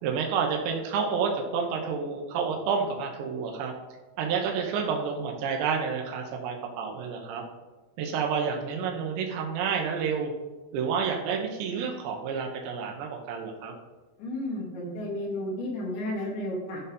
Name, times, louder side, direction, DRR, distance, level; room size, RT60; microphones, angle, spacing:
voice 1, 0.0-3.7 4.2-7.4 8.0-10.3 10.7-13.7, right 6 dB, 80° right, 2 dB, 3.1 m, -29 dB
voice 2, 14.2-16.8, left 1 dB, 80° left, -3 dB, 3.9 m, -32 dB
12.5 x 4.5 x 5.2 m, 1.2 s
omnidirectional pair, 5.1 m